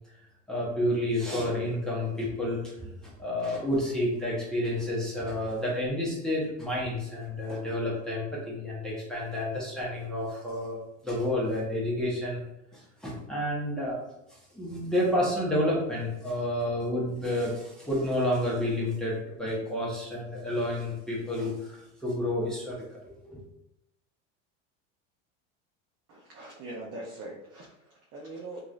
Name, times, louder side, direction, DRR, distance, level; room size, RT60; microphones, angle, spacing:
voice 1, 0.5-12.4 12.7-14.0 14.3-22.8 23.2-23.4, left 1 dB, ahead, -6 dB, 1.0 m, -30 dB
voice 2, 26.1-27.7 28.1-28.6, right 2 dB, 45° right, -3 dB, 0.7 m, -41 dB
2.9 x 2.7 x 2.5 m, 0.85 s
hypercardioid pair, 95°, 36 cm